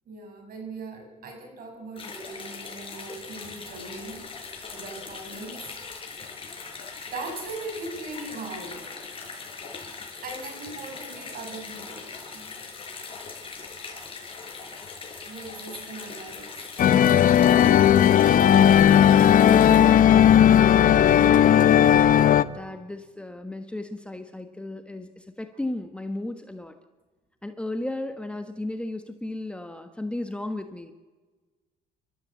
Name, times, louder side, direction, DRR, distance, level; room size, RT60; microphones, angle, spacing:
voice 1, 0.1-4.2 4.7-5.7 7.1-8.8 10.2-12.5 15.2-16.5 17.4-18.0, right 3 dB, 60° right, 4 dB, 6.4 m, -39 dB
sound 1, 2.0-19.8, left 4 dB, 30° left, 5.5 m, -40 dB
sound 2, 16.8-22.4, left 10 dB, 50° left, 0.8 m, -16 dB
voice 2, 22.5-26.7 27.4-30.9, left 1 dB, 5° left, 7 dB, 1.3 m, -35 dB
29.5 x 13.5 x 7.7 m, 1.3 s
cardioid pair, 110°, 17 cm